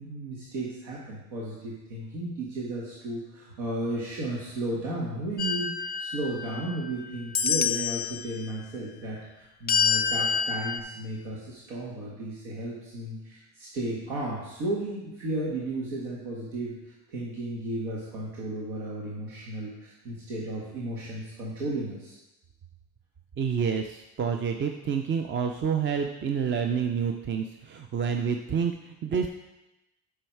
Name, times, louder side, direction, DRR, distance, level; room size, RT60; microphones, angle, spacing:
voice 1, 0.0-16.7 17.1-22.2, right 1 dB, 90° right, -5 dB, 1.7 m, -34 dB
sound 1, 5.4-6.9 7.3-8.2 9.7-10.8, left 6 dB, 25° left, 0.3 m, -27 dB
voice 2, 23.4-29.3, right 6 dB, 30° right, 5 dB, 0.5 m, -28 dB
7.6 x 5.6 x 4.7 m, 0.98 s
supercardioid pair, 100°, 38 cm